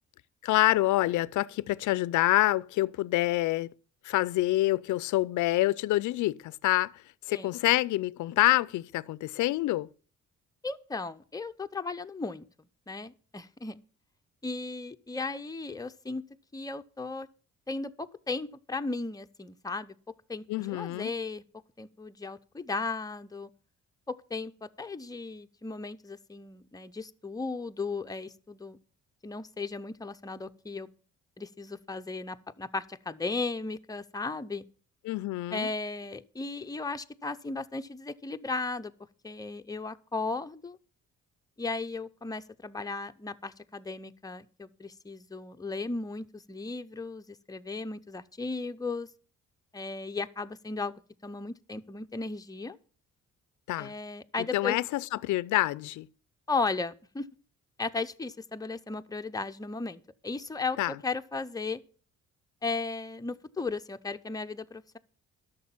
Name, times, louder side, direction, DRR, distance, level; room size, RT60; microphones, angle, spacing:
voice 1, 0.4-3.7 4.0-6.9 7.3-9.9 20.5-21.1 35.0-35.7 53.7-53.9 54.4-56.1 60.8-60.9, left 17 dB, 75° left, 0.5 m, -27 dB
voice 2, 10.6-12.5 12.9-13.8 14.4-16.2 16.5-17.3 17.7-20.0 20.3-21.4 21.8-23.5 24.1-28.8 29.2-30.9 31.4-34.6 35.5-38.9 39.2-40.8 41.6-49.1 49.7-52.8 53.8-54.8 56.5-57.3 57.8-61.8 62.6-65.0, left 3 dB, 10° left, 0.7 m, -36 dB
11.0 x 6.8 x 7.2 m
cardioid pair, 90°, 30 cm